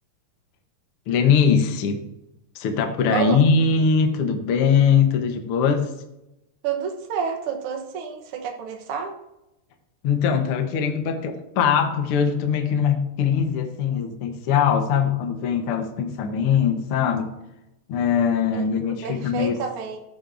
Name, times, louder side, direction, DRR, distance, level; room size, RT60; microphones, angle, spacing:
voice 1, 1.1-2.0 2.5-5.8 10.0-17.3 17.9-19.5, left 6 dB, 70° left, 5 dB, 1.3 m, -21 dB
voice 2, 6.6-9.1 13.9-14.0 18.5-18.7 19.0-20.0, right 7 dB, 70° right, 3 dB, 1.4 m, -29 dB
14.5 x 8.6 x 2.6 m, 0.90 s
omnidirectional pair, 4.1 m